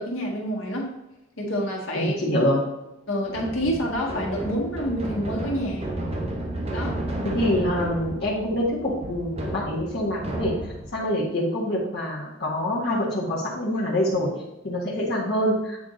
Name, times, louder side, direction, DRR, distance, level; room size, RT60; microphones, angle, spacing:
voice 1, 0.0-0.9 1.4-2.1 3.1-5.9 6.7-7.0, equal, 70° left, -2 dB, 1.7 m, -28 dB
voice 2, 1.9-2.6 7.3-10.5 10.9-14.3 14.6-15.8, left 1 dB, 50° left, -6 dB, 1.5 m, -25 dB
sound 1, 3.3-11.0, right 1 dB, 30° right, 1.1 m, -32 dB
8.6 x 3.6 x 3.8 m, 0.93 s
head